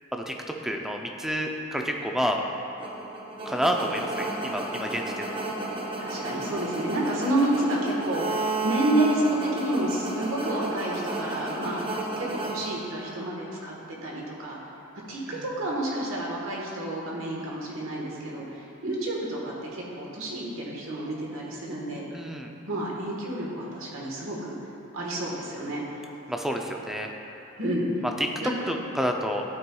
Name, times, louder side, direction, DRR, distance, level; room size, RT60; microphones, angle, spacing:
voice 1, 0.6-2.4 3.5-4.1 4.4-5.3 15.3-15.4 22.1-22.5 26.3-27.1 28.2-28.3 28.7-29.4, equal, ahead, 2 dB, 0.4 m, -29 dB
sound 1, 2.8-13.2, right 2 dB, 25° right, 0.7 m, -33 dB
voice 2, 6.0-11.8 12.2-13.7 14.0-14.6 15.1-22.1 22.7-24.6 24.9-25.8 27.6-27.9 28.4-28.5, right 1 dB, 70° right, -3 dB, 1.3 m, -29 dB
12.5 x 4.5 x 2.3 m, 3.0 s
head